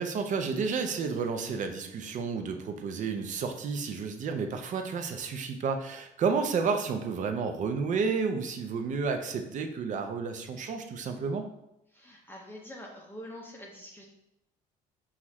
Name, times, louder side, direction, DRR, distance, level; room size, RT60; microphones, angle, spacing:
voice 1, 0.0-11.5, right 5 dB, 50° right, 6 dB, 0.5 m, -31 dB
voice 2, 11.9-14.1, equal, 10° left, -2 dB, 0.6 m, -45 dB
5.6 x 2.4 x 3.1 m, 0.86 s
cardioid pair, 110°, 17 cm